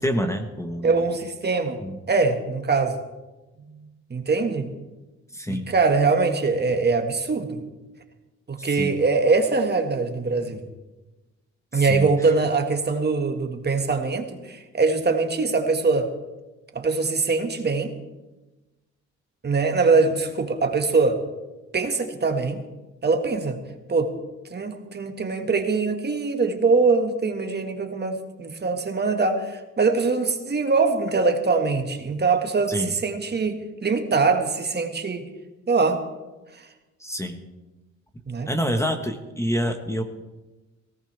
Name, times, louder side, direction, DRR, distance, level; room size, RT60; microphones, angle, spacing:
voice 1, 0.0-1.1 1.8-2.0 5.3-5.7 8.6-8.9 11.7-12.3 32.7-33.0 37.0-37.4 38.5-40.0, equal, 10° left, 5 dB, 1.3 m, -27 dB
voice 2, 0.8-1.8 2.1-3.0 3.7-3.8 4.1-4.7 5.5-7.6 8.5-10.6 11.7-16.1 16.8-17.9 19.4-21.2 21.7-22.6 23.0-23.6 23.9-24.1 24.5-35.2 35.7-36.0 38.3-38.5, right 4 dB, 35° right, 5 dB, 1.8 m, -23 dB
18.0 x 17.0 x 3.4 m, 1.1 s
cardioid pair, 90°, 30 cm